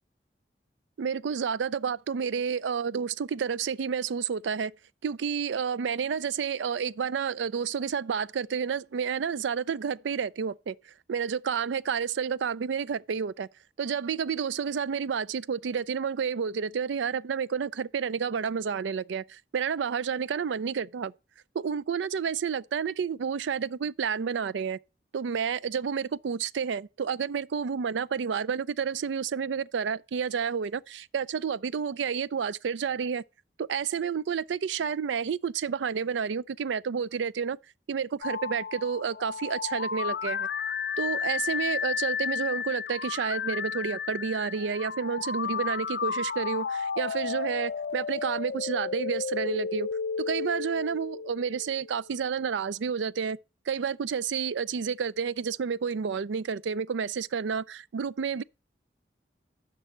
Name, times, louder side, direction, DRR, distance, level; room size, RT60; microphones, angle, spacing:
voice 1, 1.0-4.7 5.0-13.5 13.8-21.1 21.5-24.8 25.1-33.2 33.6-37.6 37.9-40.5 41.0-49.9 50.2-53.4 53.7-58.4, right 6 dB, 85° right, 0.4 m, -30 dB
sound 1, 38.2-52.1, left 6 dB, 65° left, 0.5 m, -33 dB
11.0 x 6.2 x 4.3 m
head